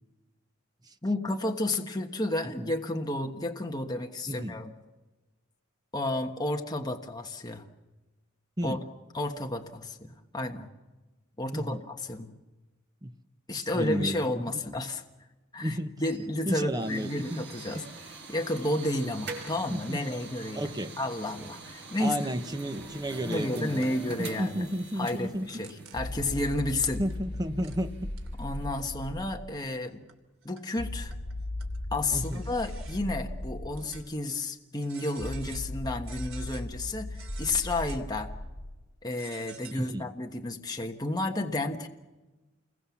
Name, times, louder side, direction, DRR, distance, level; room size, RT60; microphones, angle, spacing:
voice 1, 1.0-4.7 5.9-7.7 8.6-8.8 9.1-10.7 11.4-12.3 13.5-15.0 15.5-17.8 18.3-20.7 21.0-22.2 23.2-24.6 25.0-27.0 28.4-30.0 30.4-31.1 31.9-38.3 39.0-41.9, left 2 dB, 20° left, 1.4 m, -31 dB
voice 2, 4.3-4.6 8.6-8.8 11.5-11.8 13.0-13.1 13.6-14.6 15.6-16.0 16.4-17.4 17.7-17.8 19.7-20.0 20.5-21.0 22.0-23.9 24.2-25.5 27.0-27.9 32.1-32.4 39.7-40.1, equal, 20° right, 1.0 m, -32 dB
sound 1, 16.0-28.8, right 3 dB, 60° right, 5.3 m, -45 dB
sound 2, 23.1-24.9 25.3-26.2 26.6-27.3 27.6-27.8 28.1-29.1 29.6-29.7 30.1-30.7 31.1-33.2 33.8-34.3 34.8-35.7 36.0-36.7 37.1-38.2 39.0-39.7, right 7 dB, 90° right, 3.0 m, -51 dB
sound 3, 25.9-29.6 30.8-34.0 35.2-38.9, left 1 dB, 85° left, 1.5 m, -38 dB
29.0 x 22.0 x 7.2 m
head